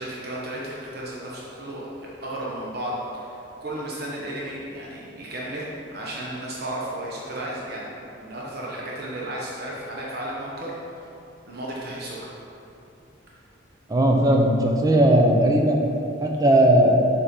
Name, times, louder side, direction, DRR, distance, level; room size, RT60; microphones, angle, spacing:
voice 1, 0.0-11.0 11.5-12.2, right 1 dB, 50° right, -5 dB, 0.9 m, -34 dB
voice 2, 13.9-15.8 16.2-17.0, right 1 dB, 20° right, 1 dB, 0.6 m, -17 dB
7.1 x 4.2 x 5.2 m, 2.8 s
head